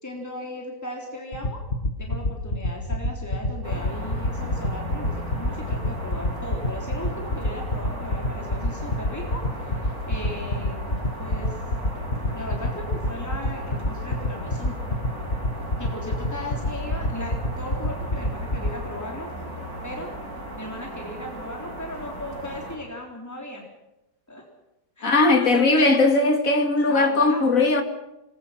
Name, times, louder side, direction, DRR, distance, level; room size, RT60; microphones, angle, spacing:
voice 1, 0.0-1.6 2.0-10.9 11.2-11.6 12.3-14.8 15.8-19.3 19.8-20.1 20.5-23.6 24.3-24.4 25.0-26.0 26.9-27.5, left 1 dB, 10° left, 3.8 m, -37 dB
sound 1, 1.3-18.7, left 1 dB, 40° left, 2.1 m, -24 dB
sound 2, 3.6-22.8, right 1 dB, 85° right, 7.6 m, -36 dB
voice 2, 25.0-27.8, left 2 dB, 65° left, 3.1 m, -19 dB
27.0 x 21.5 x 6.0 m
omnidirectional pair, 1.5 m